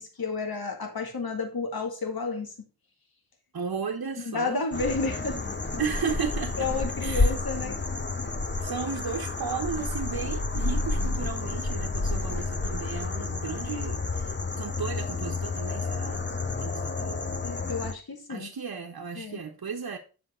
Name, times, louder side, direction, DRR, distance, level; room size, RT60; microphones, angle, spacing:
voice 1, 0.0-2.6 4.2-5.4 6.6-7.8 17.4-18.5 19.2-19.4, left 4 dB, 75° left, 1.9 m, -31 dB
voice 2, 3.5-4.7 5.8-6.7 7.0-7.3 8.6-14.0 14.6-16.3 16.6-17.4 18.3-20.0, right 6 dB, 70° right, 1.0 m, -34 dB
sound 1, 4.7-17.9, left 3 dB, 30° left, 0.9 m, -30 dB
7.7 x 5.9 x 4.2 m
cardioid pair, 50°, 37 cm